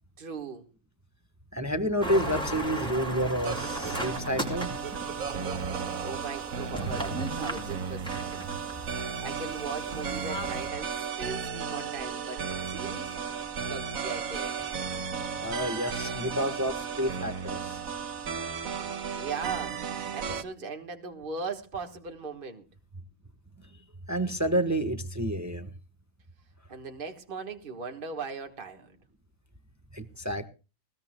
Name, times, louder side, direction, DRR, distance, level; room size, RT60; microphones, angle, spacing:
voice 1, 0.2-0.7 6.0-8.4 8.8-13.1 13.7-14.5 19.2-19.8 20.1-22.7 26.7-28.9, right 4 dB, 40° right, 4 dB, 1.7 m, -38 dB
voice 2, 1.5-4.7 15.4-17.8 24.1-25.7 29.9-30.5, equal, 15° right, 7 dB, 1.1 m, -29 dB
sound 1, 2.0-10.7, right 1 dB, 5° left, 5.3 m, -37 dB
sound 2, 3.4-20.4, right 6 dB, 85° right, 1.5 m, -34 dB
20.0 x 19.0 x 2.3 m, 0.33 s
omnidirectional pair, 1.4 m